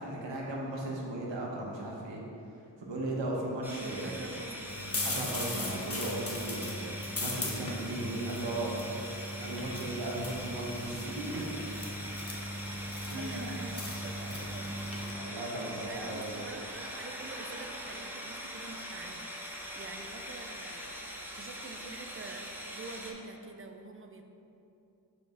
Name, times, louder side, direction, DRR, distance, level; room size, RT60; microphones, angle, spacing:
voice 1, 0.0-2.2 2.8-4.2 5.0-6.9 7.2-8.8 9.4-11.5 13.1-13.7 14.3-14.6 15.1-16.4, right 1 dB, 80° right, -3 dB, 1.1 m, -36 dB
sound 1, 3.6-23.1, equal, 5° right, 0.9 m, -42 dB
voice 2, 4.0-4.8 13.2-15.0 15.4-24.2, right 3 dB, 30° right, 5 dB, 0.6 m, -47 dB
sound 2, 4.7-15.1, left 1 dB, 35° left, 1.1 m, -38 dB
6.8 x 4.0 x 3.5 m, 2.7 s
cardioid pair, 40°, 43 cm